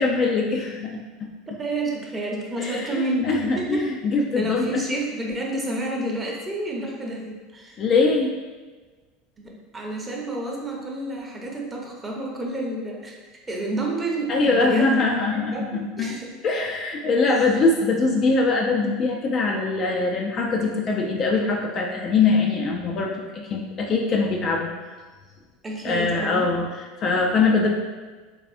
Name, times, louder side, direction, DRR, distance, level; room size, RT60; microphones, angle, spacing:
voice 1, 0.0-1.6 2.6-4.8 7.8-8.3 14.3-16.2 16.4-24.7 25.8-27.7, left 3 dB, 45° left, 0 dB, 0.4 m, -22 dB
voice 2, 1.5-3.8 4.3-7.8 9.4-13.2 13.5-14.9 15.3-16.3 17.3-17.5 25.6-26.5, right 1 dB, 20° right, -1 dB, 0.8 m, -30 dB
3.5 x 3.3 x 2.5 m, 1.3 s
hypercardioid pair, 85°, 0 cm